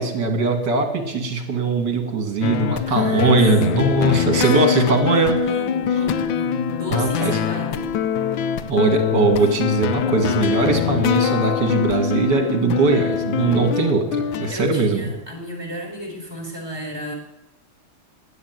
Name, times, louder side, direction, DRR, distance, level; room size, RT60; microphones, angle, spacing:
voice 1, 0.0-5.4 6.9-7.4 8.7-15.1, right 3 dB, 60° right, 5 dB, 2.7 m, -20 dB
sound 1, 2.4-14.5, left 8 dB, 75° left, 1.4 m, -23 dB
voice 2, 2.9-3.4 3.7-5.2 5.4-7.9 14.5-17.1, equal, 10° right, 0 dB, 3.8 m, -34 dB
11.0 x 8.8 x 9.4 m, 0.85 s
omnidirectional pair, 2.2 m